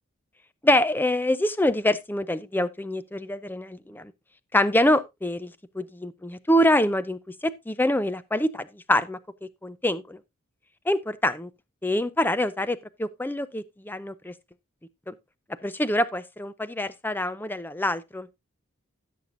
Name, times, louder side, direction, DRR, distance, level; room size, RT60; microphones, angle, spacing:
voice 1, 0.6-4.1 4.5-9.2 9.6-10.2 10.9-11.5 11.8-14.3 15.1-15.2 15.6-18.3, left 1 dB, 10° left, 0.5 m, -25 dB
16.5 x 6.8 x 2.6 m
head